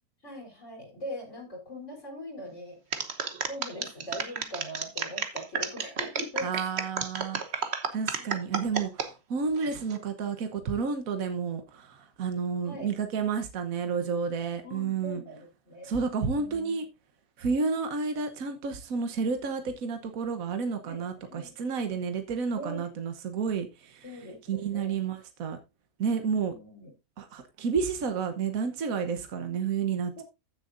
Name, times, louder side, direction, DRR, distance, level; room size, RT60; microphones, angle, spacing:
voice 1, 0.2-2.8 3.5-6.5 8.2-8.4 12.6-12.9 14.6-15.9 16.2-16.8 20.8-21.9 22.5-22.8 24.0-25.1 26.4-26.9 30.2-30.3, equal, 55° left, 4.2 m, -41 dB
sound 1, 2.9-9.1 9.6-10.0, right 6 dB, 50° right, 1.3 m, -32 dB
voice 2, 6.4-7.4 7.9-15.2 15.8-16.8 17.4-24.0 24.5-25.6 26.0-26.5 27.2-30.2, right 5 dB, 70° right, 1.5 m, -31 dB
15.5 x 6.7 x 2.6 m
omnidirectional pair, 1.5 m